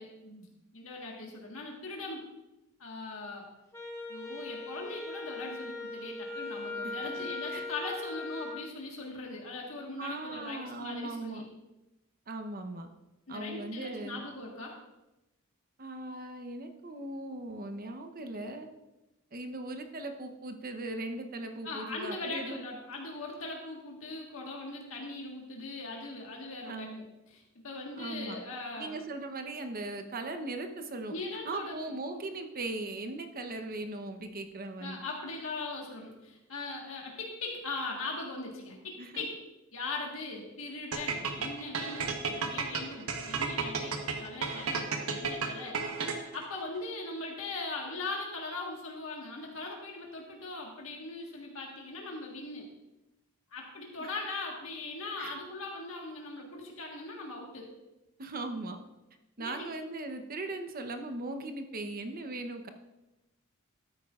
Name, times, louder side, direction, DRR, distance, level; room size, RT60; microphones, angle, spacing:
voice 1, 0.0-2.2 2.8-3.5 4.1-11.4 13.3-14.7 21.6-29.0 31.1-31.7 34.8-39.4 39.7-45.8 46.3-52.7 53.5-57.7 59.4-59.7, left 3 dB, 70° left, -1 dB, 1.5 m, -40 dB
Wind instrument woodwind instrument, 3.7-8.6, left 2 dB, 10° left, 1.0 m, -39 dB
voice 2, 6.8-7.7 10.0-11.4 12.3-12.9 13.3-14.3 15.8-18.7 19.3-22.6 26.7-27.0 28.0-28.4 28.8-31.2 31.4-35.0 39.0-39.3 54.0-54.1 55.2-55.4 58.2-58.8 59.4-62.7, right 2 dB, 40° right, 6 dB, 0.8 m, -39 dB
sound 1, 40.9-46.4, right 5 dB, 85° right, 1.1 m, -33 dB
13.0 x 9.3 x 2.4 m, 0.98 s
head